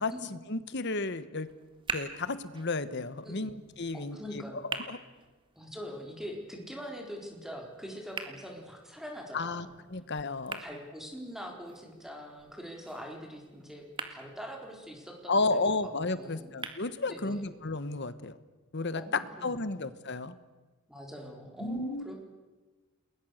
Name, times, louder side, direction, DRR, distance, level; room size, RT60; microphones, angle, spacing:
voice 1, 0.0-1.5 1.9-4.4 4.9-5.0 9.3-10.6 15.3-18.4 18.7-19.0 19.4-20.4 21.6-22.1, left 3 dB, 50° left, 13 dB, 1.2 m, -33 dB
sound 1, 1.4-17.4, right 4 dB, 25° right, 1.8 m, -46 dB
voice 2, 3.9-4.7 5.6-9.7 10.6-15.8 16.1-16.5 17.0-17.5 19.0-19.9 20.9-22.2, equal, ahead, 1 dB, 4.2 m, -43 dB
29.0 x 21.0 x 6.6 m, 1.2 s
head